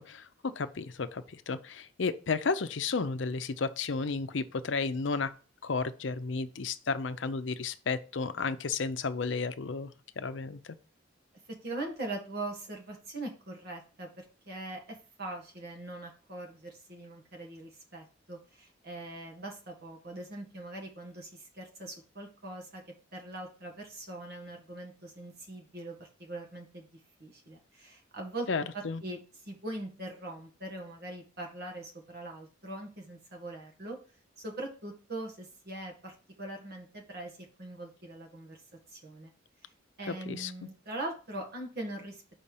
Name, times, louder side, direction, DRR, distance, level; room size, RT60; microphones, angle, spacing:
voice 1, 0.0-5.3 5.6-9.9 10.2-10.8 28.5-29.0 40.1-40.5, left 4 dB, 70° left, 0.6 m, -33 dB
voice 2, 11.6-22.8 23.1-28.5 28.7-29.2 29.5-34.0 34.4-38.6 38.9-39.3 39.6-39.7 40.0-42.2, right 2 dB, 55° right, 1.8 m, -42 dB
5.6 x 4.3 x 5.4 m
head